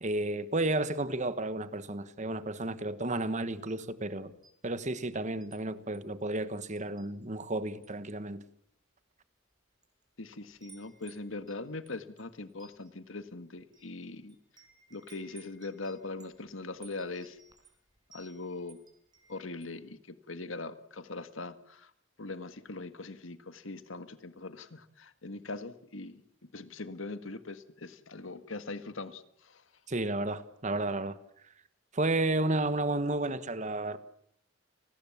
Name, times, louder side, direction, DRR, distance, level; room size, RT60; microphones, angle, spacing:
voice 1, 0.0-4.3 4.6-8.4 29.9-31.2 31.9-34.0, right 2 dB, 35° right, 1.3 m, -32 dB
Wind chime, 4.4-5.6 5.9-6.2 6.8-7.5 7.8-8.1 8.8-8.9 9.6-10.0 10.3-19.8, right 4 dB, 20° right, 5.0 m, -59 dB
voice 2, 10.2-14.4 14.9-17.4 18.1-18.8 19.3-21.9 22.2-26.2 26.5-29.6, left 3 dB, 75° left, 1.8 m, -41 dB
30.0 x 20.0 x 7.3 m
head